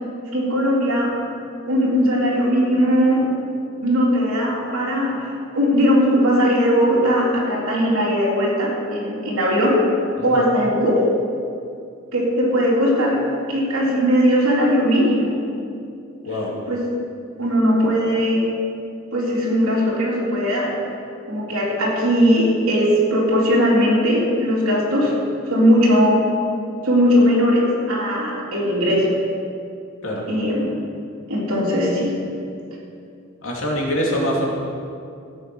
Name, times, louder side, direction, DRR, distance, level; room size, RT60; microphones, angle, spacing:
voice 1, 0.3-1.1 1.6-3.2 3.8-5.2 5.5-9.8 10.2-11.0 12.1-15.4 16.5-16.8 17.4-18.5 19.1-20.7 21.3-25.1 25.5-26.2 26.8-29.2 30.3-30.7 31.3-32.1, equal, 85° right, -4 dB, 3.4 m, -19 dB
voice 2, 33.4-34.5, equal, 70° left, -2 dB, 2.7 m, -24 dB
15.0 x 8.0 x 6.2 m, 2.4 s
head